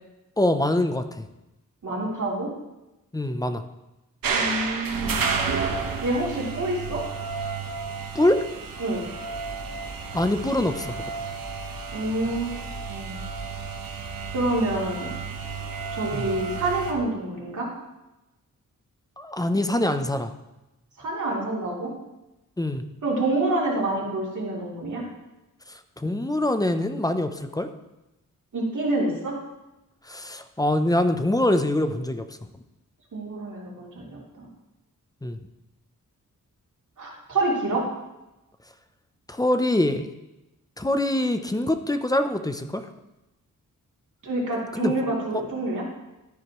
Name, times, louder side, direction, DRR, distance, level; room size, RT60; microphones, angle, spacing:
voice 1, 0.4-1.3 3.1-3.6 8.1-8.4 10.1-10.9 16.1-16.3 19.2-20.3 22.6-22.8 25.7-27.7 30.1-32.2 35.2-35.4 39.3-40.1 40.8-42.8 44.7-44.9 45.3-45.4, left 1 dB, 10° left, 8 dB, 0.6 m, -24 dB
voice 2, 1.8-2.5 4.3-5.3 6.0-7.0 8.8-9.0 11.9-12.6 12.9-13.2 14.3-15.1 15.9-17.7 21.0-21.9 23.0-25.0 28.5-29.4 33.1-34.5 37.0-37.9 44.2-45.8, right 2 dB, 60° right, -4 dB, 3.2 m, -27 dB
sound 1, 4.2-16.9, right 5 dB, 90° right, 1.2 m, -31 dB
13.0 x 9.7 x 3.1 m, 0.98 s
wide cardioid pair, 140°, 33 cm